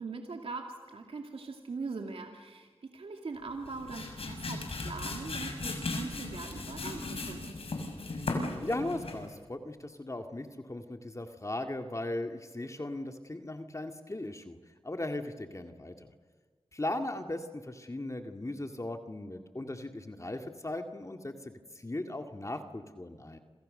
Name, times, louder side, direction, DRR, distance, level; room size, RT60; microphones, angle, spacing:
voice 1, 0.0-7.5, right 4 dB, 80° right, 3 dB, 2.5 m, -41 dB
sound 1, 3.5-9.3, left 2 dB, 75° left, 6.4 m, -37 dB
voice 2, 8.6-14.6 14.8-16.1 16.7-23.4, left 1 dB, 30° left, 5 dB, 2.2 m, -38 dB
28.0 x 27.5 x 6.7 m, 1.5 s
cardioid pair, 45°, 10 cm